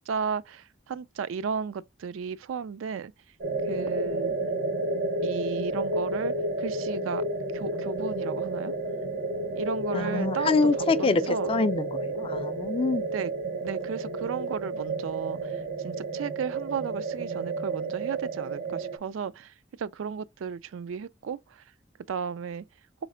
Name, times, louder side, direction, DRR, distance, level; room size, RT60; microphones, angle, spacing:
voice 1, 0.1-3.1 3.7-4.3 5.2-7.2 7.5-8.7 9.5-11.5 13.1-13.3 13.6-21.6 22.1-22.6, right 6 dB, 80° right, 0.3 m, -34 dB
sound 1, 3.4-19.0, right 2 dB, 55° right, 0.8 m, -31 dB
voice 2, 9.9-13.1, left 3 dB, 30° left, 0.3 m, -26 dB
4.1 x 3.1 x 3.7 m
head